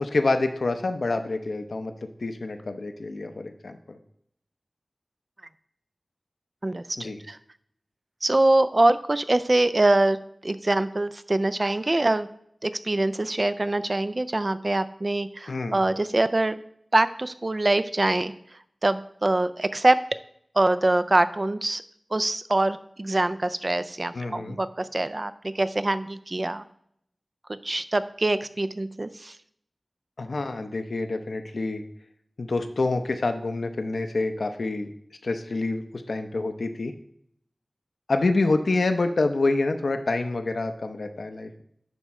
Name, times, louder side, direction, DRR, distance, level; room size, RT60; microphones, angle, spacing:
voice 1, 0.0-1.9 2.2-4.0 7.0-7.2 15.5-15.8 24.1-24.6 30.2-31.8 32.4-34.9 35.2-36.9 38.1-41.6, left 3 dB, 90° left, 7 dB, 0.7 m, -27 dB
voice 2, 6.6-7.4 8.2-10.2 10.4-12.3 12.6-16.6 16.9-18.3 18.8-20.0 20.6-21.8 22.1-26.6 27.6-29.3, right 2 dB, 45° right, 12 dB, 0.4 m, -24 dB
10.5 x 3.6 x 4.2 m, 0.69 s
wide cardioid pair, 45°, 0 cm